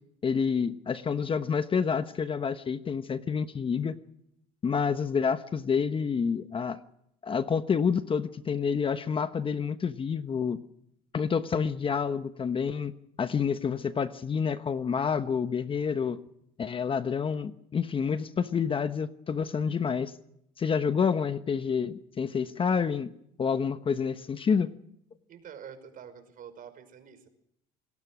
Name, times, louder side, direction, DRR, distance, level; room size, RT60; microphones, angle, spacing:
voice 1, 0.2-3.9 4.6-6.8 7.2-10.6 11.1-12.9 13.2-16.2 16.6-20.1 20.6-23.1 23.4-24.7, left 6 dB, 30° left, 11 dB, 1.1 m, -28 dB
voice 2, 25.3-27.3, right 8 dB, 45° right, 9 dB, 5.3 m, -47 dB
27.5 x 19.5 x 6.2 m, 0.75 s
supercardioid pair, 105°, 19 cm